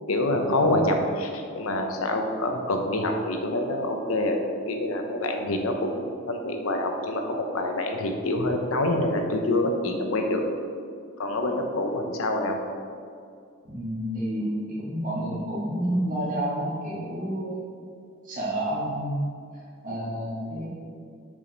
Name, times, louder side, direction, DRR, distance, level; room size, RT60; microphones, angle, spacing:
voice 1, 0.1-4.4 4.7-10.4 11.2-12.6, left 1 dB, 75° left, 4 dB, 0.8 m, -26 dB
voice 2, 13.6-17.6 18.2-19.3 19.8-20.7, right 1 dB, 40° right, -8 dB, 1.7 m, -29 dB
7.0 x 4.9 x 4.0 m, 2.3 s
head